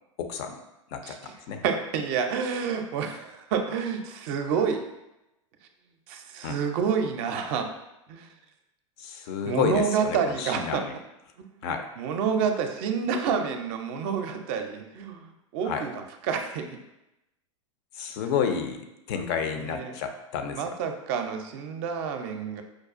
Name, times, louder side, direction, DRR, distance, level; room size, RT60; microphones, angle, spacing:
voice 1, 0.2-0.5 0.9-1.6 6.4-6.6 9.0-10.9 11.6-11.9 15.6-15.9 17.9-20.8, left 7 dB, 50° left, 6 dB, 0.4 m, -30 dB
voice 2, 1.6-4.9 6.1-7.7 8.1-8.3 9.5-10.8 11.4-11.5 12.0-15.9 16.2-16.8 19.6-19.9 20.5-22.6, right 6 dB, 50° right, 5 dB, 0.4 m, -28 dB
4.7 x 2.3 x 2.4 m, 0.91 s
hypercardioid pair, 95°, 17 cm